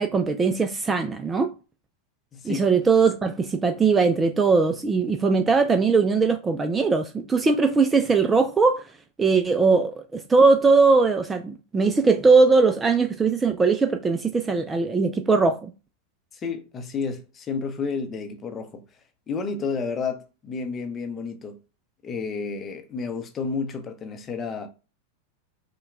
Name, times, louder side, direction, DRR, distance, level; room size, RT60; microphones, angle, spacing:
voice 1, 0.0-1.5 2.4-8.8 9.2-15.7, right 4 dB, 15° right, 0.3 m, -20 dB
voice 2, 2.3-2.7 16.3-18.8 19.3-21.6 22.0-24.7, left 5 dB, 25° left, 0.6 m, -31 dB
5.5 x 2.2 x 2.5 m
figure-of-eight pair, 90°, 0 cm